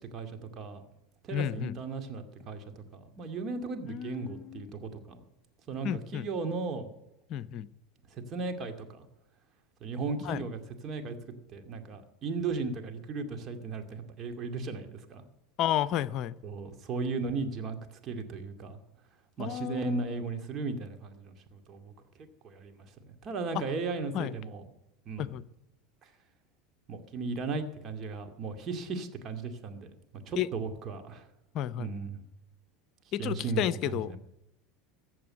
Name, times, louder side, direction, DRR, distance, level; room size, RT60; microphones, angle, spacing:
voice 1, 0.1-0.8 1.2-5.2 5.7-6.9 8.1-9.1 9.8-11.2 11.5-15.2 16.4-17.8 18.0-18.8 19.4-21.9 22.4-24.6 25.1-25.3 26.0-26.1 26.9-29.9 30.3-31.3 31.8-32.2 33.2-34.2, right 4 dB, 40° right, 6 dB, 2.3 m, -36 dB
voice 2, 1.3-1.7 3.9-4.7 5.8-6.2 7.3-7.7 10.2-10.4 15.6-16.4 19.4-20.0 24.1-24.3 25.2-25.4 30.4-30.5 31.5-31.9 33.1-34.1, left 11 dB, 50° left, 17 dB, 0.7 m, -32 dB
14.5 x 7.7 x 9.5 m, 0.89 s
hypercardioid pair, 85°, 0 cm